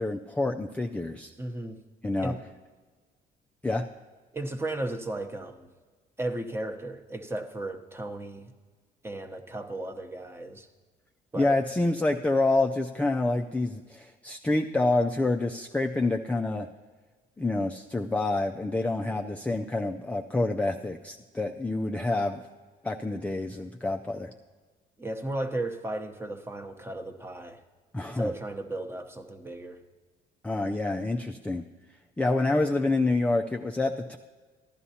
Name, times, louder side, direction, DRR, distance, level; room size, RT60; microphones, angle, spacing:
voice 1, 0.0-1.3 2.0-2.3 3.6-3.8 11.4-16.7 17.4-22.4 22.8-24.3 27.9-28.3 30.4-31.6 32.2-34.2, left 2 dB, 10° left, 2 dB, 0.4 m, -27 dB
voice 2, 1.4-1.8 2.2-2.4 4.3-5.7 6.2-8.5 9.0-10.7 11.3-11.6 19.0-19.4 25.0-27.6 28.1-29.8, right 1 dB, 15° right, 6 dB, 0.9 m, -35 dB
15.0 x 11.0 x 2.8 m, 1.4 s
cardioid pair, 110°, 17 cm